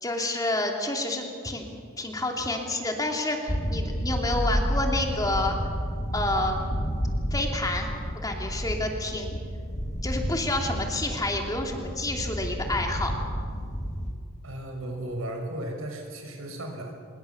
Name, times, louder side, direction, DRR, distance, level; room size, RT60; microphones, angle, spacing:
voice 1, 0.0-5.6 6.1-6.7 7.3-7.9 8.2-9.4 10.0-13.1, left 2 dB, 20° left, 2 dB, 2.8 m, -29 dB
sound 1, 3.5-14.1, equal, 35° left, 2.2 m, -30 dB
voice 2, 14.4-16.9, right 1 dB, 90° right, 2 dB, 5.7 m, -35 dB
25.5 x 22.0 x 7.1 m, 2.1 s
head